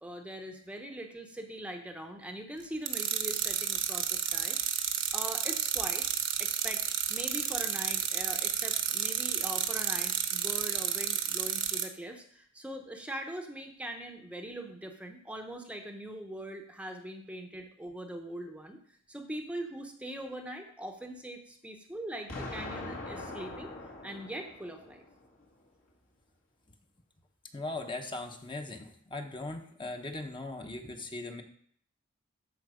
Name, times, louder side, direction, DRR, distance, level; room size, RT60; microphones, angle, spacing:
voice 1, 0.0-4.8 5.1-6.1 6.4-6.8 7.1-18.8 19.1-23.7 24.0-25.0, right 1 dB, 5° right, 4 dB, 0.8 m, -41 dB
sound 1, 2.9-11.9, right 9 dB, 60° right, 0.9 m, -31 dB
Explosion, 22.3-25.3, left 2 dB, 70° left, 2.4 m, -42 dB
voice 2, 27.5-31.4, left 2 dB, 25° left, 4 dB, 0.9 m, -39 dB
13.0 x 4.4 x 5.0 m, 0.63 s
head